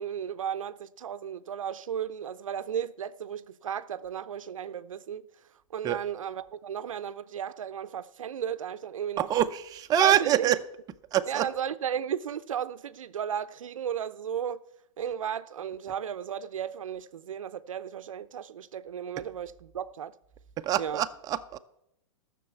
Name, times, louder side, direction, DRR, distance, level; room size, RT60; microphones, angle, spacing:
voice 1, 0.0-5.3 5.7-9.3 9.9-10.5 11.3-14.6 15.0-20.1 20.8-21.0, right 9 dB, 85° right, 0.6 m, -34 dB
voice 2, 9.2-10.6 11.1-11.5 20.6-21.6, right 11 dB, 20° right, 0.6 m, -25 dB
13.0 x 6.6 x 8.2 m
hypercardioid pair, 130°, 17 cm